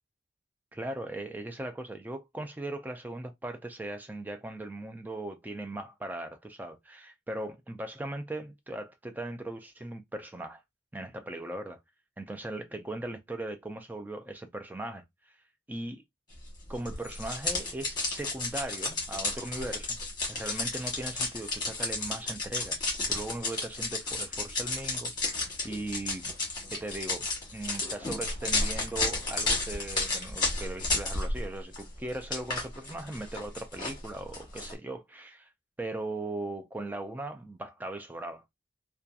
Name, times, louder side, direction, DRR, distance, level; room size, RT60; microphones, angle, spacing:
voice 1, 0.7-10.6 10.9-11.8 12.2-15.0 15.7-16.0 16.7-20.0 20.3-26.3 26.7-35.5 35.8-38.4, right 2 dB, 10° right, 0.3 m, -38 dB
sound 1, 16.8-31.4 31.7-34.7, left 3 dB, 25° left, 1.1 m, -32 dB
2.7 x 2.2 x 2.3 m
head